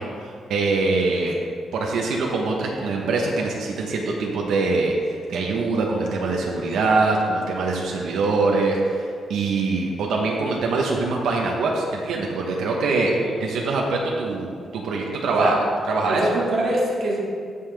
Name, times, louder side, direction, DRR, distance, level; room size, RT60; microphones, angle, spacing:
voice 1, 0.0-1.4 1.7-13.1 13.4-15.6 15.9-16.2, right 3 dB, 85° right, -1 dB, 1.1 m, -23 dB
voice 2, 13.0-13.6 15.3-15.6 16.1-17.2, right 1 dB, 55° right, -4 dB, 2.3 m, -24 dB
14.5 x 5.7 x 3.5 m, 2.2 s
cardioid pair, 150°, 0 cm